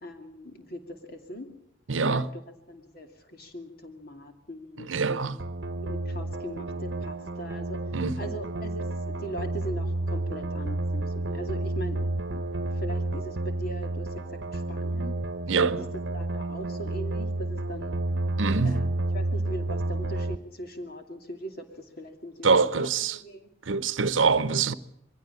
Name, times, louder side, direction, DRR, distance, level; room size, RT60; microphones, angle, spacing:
voice 1, 0.0-1.5 2.1-2.4 2.7-5.2 5.8-7.8 8.2-12.0 12.3-15.2 15.5-15.7 16.1-18.0 18.6-23.5, right 1 dB, 50° left, 2.6 m, -40 dB
voice 2, 1.9-2.3 4.8-5.4 7.9-8.3 15.5-15.9 18.4-18.9 22.4-23.2 23.7-24.7, right 4 dB, 90° right, 0.9 m, -24 dB
sound 1, 5.4-20.4, right 2 dB, 65° right, 1.0 m, -31 dB
22.5 x 16.0 x 8.6 m
head